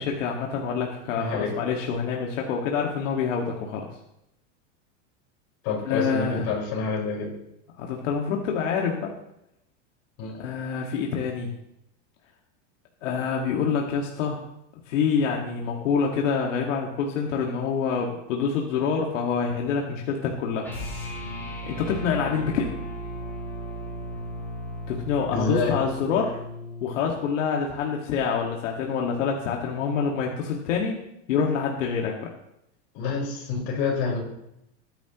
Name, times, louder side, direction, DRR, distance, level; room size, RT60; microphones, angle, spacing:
voice 1, 0.0-3.9 5.8-6.5 7.8-9.1 10.4-11.5 13.0-14.4 14.9-20.7 21.7-22.8 24.9-26.4 26.8-31.0 31.3-32.3, left 6 dB, 80° left, 0 dB, 1.9 m, -26 dB
voice 2, 1.2-1.5 5.6-7.3 10.2-10.4 25.3-25.7 32.9-34.2, left 4 dB, 45° left, -2 dB, 4.9 m, -27 dB
sound 1, 20.6-27.0, equal, 5° left, 3.8 m, -36 dB
19.5 x 10.5 x 3.0 m, 0.82 s
supercardioid pair, 175°, 37 cm